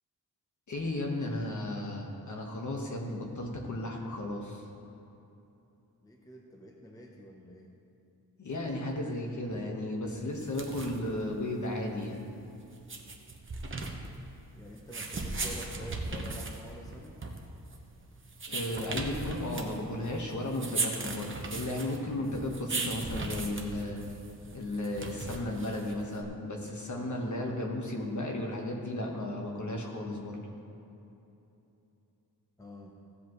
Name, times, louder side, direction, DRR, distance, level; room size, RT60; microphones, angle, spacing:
voice 1, 0.7-4.6 8.4-12.3 18.5-24.0 24.5-30.4, left 1 dB, 50° left, 1 dB, 1.3 m, -34 dB
voice 2, 6.0-7.7 14.6-17.2 32.6-33.0, equal, 10° left, 0 dB, 0.7 m, -48 dB
sound 1, 10.3-26.2, right 3 dB, 30° right, 0.9 m, -38 dB
15.5 x 7.7 x 3.1 m, 2.9 s
wide cardioid pair, 145°, 38 cm